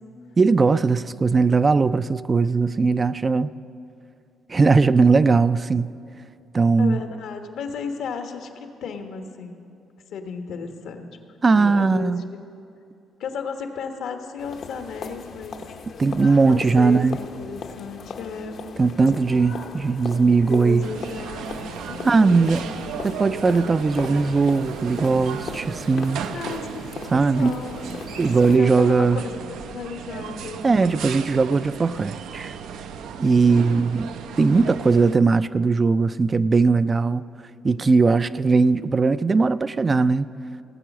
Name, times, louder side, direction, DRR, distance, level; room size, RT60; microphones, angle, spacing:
voice 1, 0.4-3.5 4.5-5.9 6.5-7.0 11.4-12.2 16.0-17.2 18.8-20.9 22.0-22.6 23.0-26.2 27.1-27.6 28.2-29.2 30.6-32.6 33.2-34.1 34.4-37.2 37.6-40.3, right 4 dB, 30° right, 0.3 m, -19 dB
voice 2, 6.8-9.6 10.1-11.1 11.5-12.4 13.2-15.6 16.4-18.6 20.5-21.5 21.9-22.6 26.3-27.7 28.4-29.1 29.5-30.6 33.4-33.8, left 5 dB, 80° left, 1.2 m, -34 dB
sound 1, 14.4-28.6, left 5 dB, 60° left, 0.8 m, -38 dB
sound 2, 20.8-35.2, right 7 dB, 85° right, 0.5 m, -35 dB
17.5 x 8.1 x 6.1 m
cardioid pair, 90°, 0 cm